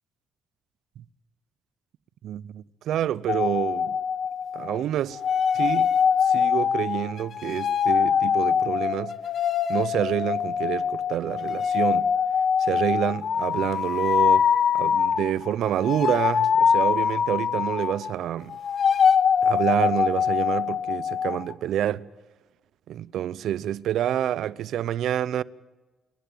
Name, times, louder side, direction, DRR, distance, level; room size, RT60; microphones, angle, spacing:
voice 1, 2.2-4.0 4.5-5.2 5.5-5.9 6.2-9.1 9.7-12.1 12.6-14.5 14.7-18.6 19.4-22.0 22.9-25.4, right 11 dB, 75° right, 0.6 m, -27 dB
sound 1, 3.3-4.8 5.1-18.2 18.5-21.5, left 7 dB, 55° left, 1.1 m, -23 dB
28.0 x 11.5 x 9.2 m
cardioid pair, 90°, 0 cm